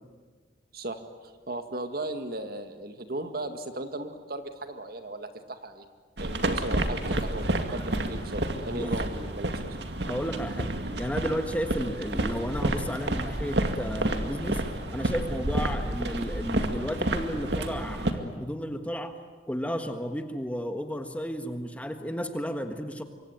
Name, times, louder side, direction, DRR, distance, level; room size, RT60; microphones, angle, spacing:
voice 1, 1.5-5.8 6.2-9.8, right 2 dB, 55° right, 7 dB, 2.1 m, -36 dB
sound 1, 6.2-18.1, right 1 dB, 70° right, 2.3 m, -30 dB
voice 2, 10.1-10.7 11.0-14.6 14.9-19.1 19.5-23.0, equal, 10° left, 7 dB, 1.5 m, -33 dB
26.0 x 24.0 x 9.2 m, 1.5 s
head